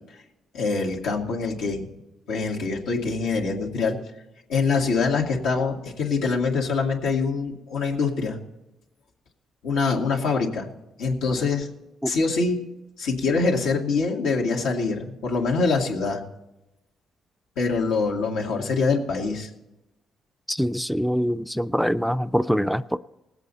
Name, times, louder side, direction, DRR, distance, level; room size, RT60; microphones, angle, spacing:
voice 1, 0.5-1.9 2.3-4.0 4.5-8.4 9.6-10.7 11.0-11.7 12.1-12.6 13.0-16.2 17.6-19.5, left 4 dB, 90° left, 2.1 m, -24 dB
voice 2, 20.5-23.0, equal, ahead, 0.4 m, -24 dB
19.0 x 8.2 x 4.1 m
cardioid pair, 90°, 0 cm